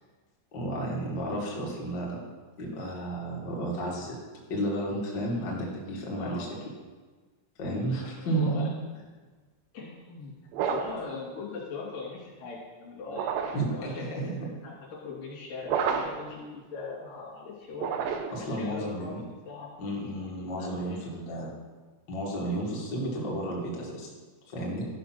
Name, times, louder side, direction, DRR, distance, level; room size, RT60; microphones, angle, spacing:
voice 1, 0.5-2.2 2.6-4.2 4.5-6.5 7.6-8.7 13.5-14.4 18.3-19.2 19.8-21.5 22.1-24.1 24.5-24.9, right 1 dB, 70° left, -4 dB, 1.0 m, -32 dB
voice 2, 8.0-9.0 9.7-10.3 10.6-13.3 13.7-14.0 14.6-14.7 15.0-18.0 18.4-19.7 20.4-21.5, left 4 dB, 50° left, -5 dB, 4.1 m, -40 dB
sound 1, 10.5-11.1 13.1-13.7 15.6-16.3 17.7-18.5, right 7 dB, 80° right, 2.6 m, -30 dB
13.5 x 5.8 x 5.9 m, 1.4 s
omnidirectional pair, 5.7 m